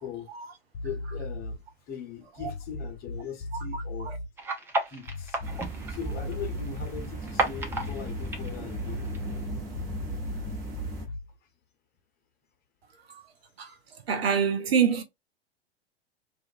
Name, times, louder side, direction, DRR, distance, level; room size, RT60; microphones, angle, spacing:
sound 1, 0.7-1.7 2.4-4.3 5.1-5.8 6.1-7.0 7.7-11.4, left 2 dB, 65° left, 0.5 m, -37 dB
voice 1, 0.8-1.6 1.9-4.1 4.9-5.4 5.9-9.0, left 7 dB, 30° left, 0.9 m, -40 dB
voice 2, 3.5-4.2 13.1-13.3 13.6-13.7 14.1-15.0, right 7 dB, 70° right, 0.7 m, -27 dB
sound 2, 4.4-9.4, right 2 dB, 10° right, 0.3 m, -33 dB
sound 3, 5.4-11.1, right 2 dB, 30° right, 1.1 m, -37 dB
2.5 x 2.4 x 2.4 m
figure-of-eight pair, 90°, 32 cm